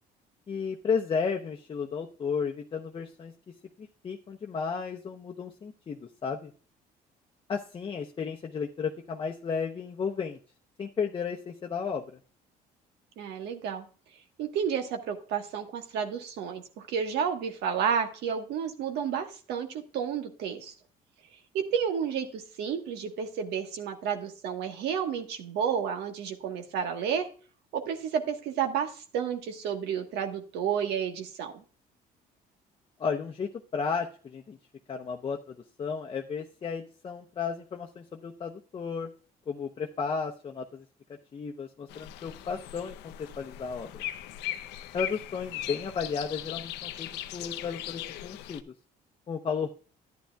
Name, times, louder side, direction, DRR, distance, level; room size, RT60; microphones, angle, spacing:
voice 1, 0.5-6.5 7.5-10.4 10.8-12.0 33.0-34.6 34.9-39.1 39.5-40.8 41.3-44.0 44.9-48.7 49.3-49.7, left 5 dB, 30° left, 2 dB, 0.8 m, -33 dB
voice 2, 13.2-13.8 14.4-20.7 21.5-27.3 27.7-31.6, right 7 dB, 80° right, 4 dB, 1.3 m, -31 dB
sound 1, 41.9-48.6, left 13 dB, 90° left, 0.6 m, -39 dB
11.5 x 10.5 x 2.3 m, 0.40 s
cardioid pair, 110°, 17 cm